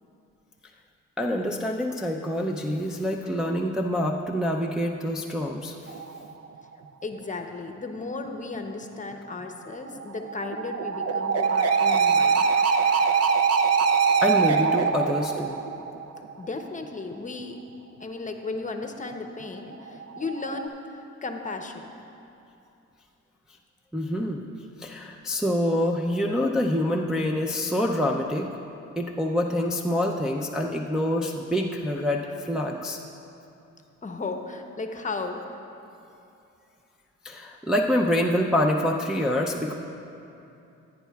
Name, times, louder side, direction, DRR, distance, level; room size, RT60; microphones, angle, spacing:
voice 1, 1.2-5.8 11.8-13.3 14.2-15.6 23.9-24.4 24.8-28.5 29.0-33.0 37.2-39.7, left 1 dB, ahead, -1 dB, 0.5 m, -26 dB
sound 1, 5.9-6.3 9.9-16.3 19.9-20.7, right 5 dB, 55° right, 0.7 m, -23 dB
voice 2, 7.0-12.5 16.4-17.6 18.0-21.9 34.0-35.4, left 3 dB, 25° left, 5 dB, 0.8 m, -35 dB
15.5 x 9.2 x 2.3 m, 2.8 s
cardioid pair, 90°, 30 cm